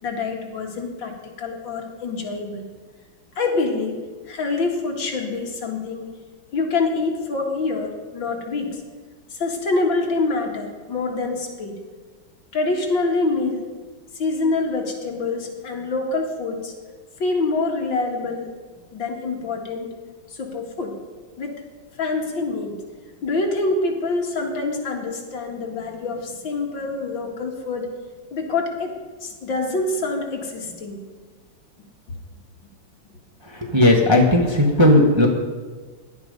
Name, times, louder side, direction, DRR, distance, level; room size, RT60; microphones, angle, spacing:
voice 1, 0.0-1.1 1.4-2.7 3.4-4.0 4.3-6.1 6.5-8.8 9.3-11.7 12.5-13.6 14.1-16.7 17.2-18.5 18.9-19.9 20.3-20.9 21.4-21.5 21.9-22.8 23.2-27.9 28.3-28.9 29.2-31.0, left 3 dB, 65° left, 1 dB, 2.8 m, -25 dB
voice 2, 33.6-35.3, left 1 dB, 15° right, -1 dB, 1.6 m, -15 dB
17.0 x 11.5 x 5.4 m, 1.4 s
omnidirectional pair, 2.2 m